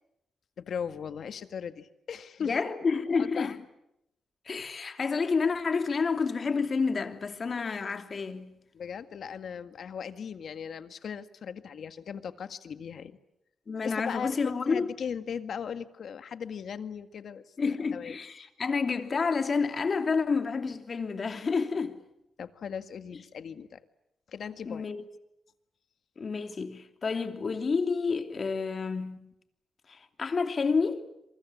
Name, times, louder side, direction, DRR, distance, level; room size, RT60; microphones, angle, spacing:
voice 1, 0.6-2.6 3.1-3.5 8.7-13.2 13.8-18.1 22.4-23.8 24.3-24.9, left 7 dB, 65° left, 1.8 m, -38 dB
voice 2, 2.4-3.6 4.5-8.5 13.7-14.9 17.6-22.0 24.7-25.0 26.2-29.3 29.9-31.1, left 4 dB, 45° left, 2.9 m, -29 dB
27.5 x 24.0 x 8.6 m
cardioid pair, 80°, 0 cm